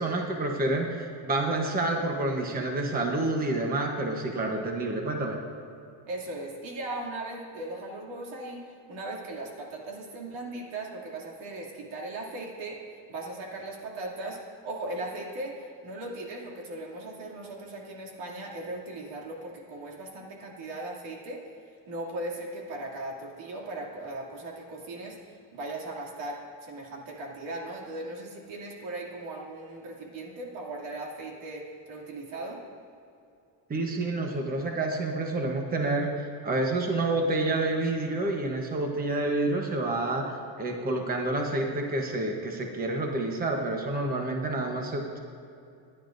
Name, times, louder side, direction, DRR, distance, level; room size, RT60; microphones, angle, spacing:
voice 1, 0.0-5.4 33.7-40.3 40.6-45.2, right 2 dB, 20° right, 1 dB, 1.0 m, -28 dB
voice 2, 6.1-12.8 13.1-14.4 14.6-15.6 15.8-21.4 21.9-32.6, right 2 dB, 80° right, -2 dB, 2.8 m, -38 dB
26.5 x 11.0 x 2.6 m, 2.6 s
cardioid pair, 170°, 45 cm